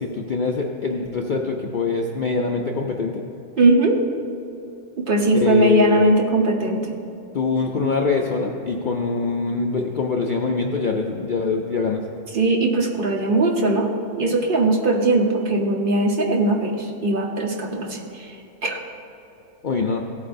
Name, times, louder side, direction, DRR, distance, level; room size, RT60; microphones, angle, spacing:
voice 1, 0.0-3.2 5.4-6.1 7.3-12.0 19.6-20.0, left 4 dB, 85° left, 1 dB, 0.4 m, -24 dB
voice 2, 3.6-4.0 5.0-6.9 12.3-13.9 14.2-18.4 18.6-18.8, right 2 dB, 40° right, 0 dB, 1.0 m, -20 dB
15.5 x 8.3 x 2.6 m, 2.8 s
omnidirectional pair, 1.6 m